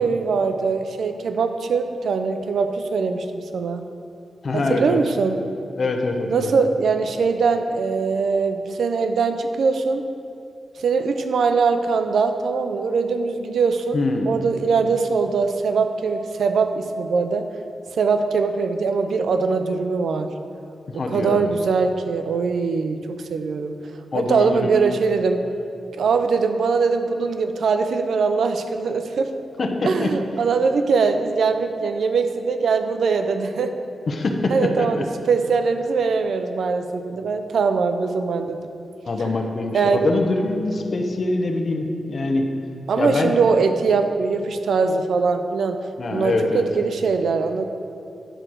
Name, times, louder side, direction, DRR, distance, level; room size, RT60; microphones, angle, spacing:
voice 1, 0.0-3.8 4.5-5.4 6.3-10.0 10.8-17.5 17.9-20.3 21.1-23.0 23.3-23.8 24.1-25.4 26.0-29.3 29.8-33.7 34.5-38.6 39.7-40.1 42.9-45.8 46.1-47.6, right 4 dB, 85° right, 8 dB, 0.5 m, -22 dB
voice 2, 4.4-5.0 5.8-6.5 13.9-14.3 20.9-21.5 24.1-24.8 29.6-30.1 34.1-34.5 34.8-34.9 39.1-42.5 43.0-43.4 46.0-46.6, left 2 dB, 55° left, 3 dB, 1.0 m, -23 dB
10.0 x 4.4 x 6.3 m, 2.5 s
cardioid pair, 80°, 0 cm